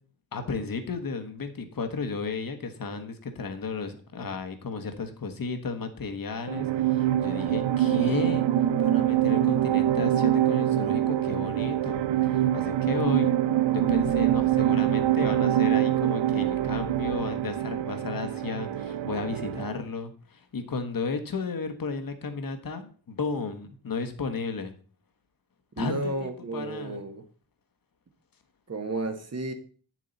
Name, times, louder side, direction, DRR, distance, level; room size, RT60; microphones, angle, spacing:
voice 1, 0.3-8.4 8.8-13.3 13.7-24.7 25.8-27.0, left 4 dB, 50° left, 7 dB, 1.4 m, -33 dB
sound 1, 6.5-19.8, right 12 dB, 85° right, 0.7 m, -25 dB
voice 2, 25.8-27.2 28.7-29.5, right 2 dB, 35° right, 8 dB, 1.4 m, -32 dB
9.3 x 7.5 x 4.1 m, 0.41 s
wide cardioid pair, 120°, 43 cm